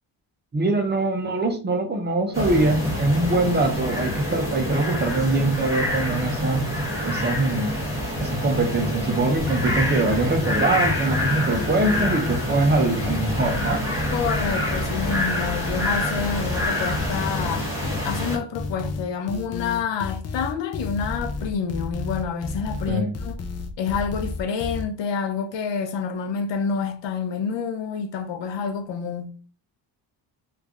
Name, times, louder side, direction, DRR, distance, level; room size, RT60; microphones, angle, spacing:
voice 1, 0.5-6.6 7.0-7.7 8.2-13.8 22.9-23.1, right 2 dB, 25° right, 0.6 m, -23 dB
sound 1, 2.3-18.4, left 1 dB, 5° right, 1.2 m, -27 dB
sound 2, 9.4-24.8, left 3 dB, 40° left, 0.5 m, -31 dB
voice 2, 14.1-17.7 18.0-23.4 23.8-29.3, left 6 dB, 90° left, 0.7 m, -28 dB
3.1 x 2.5 x 3.5 m
wide cardioid pair, 150°, 42 cm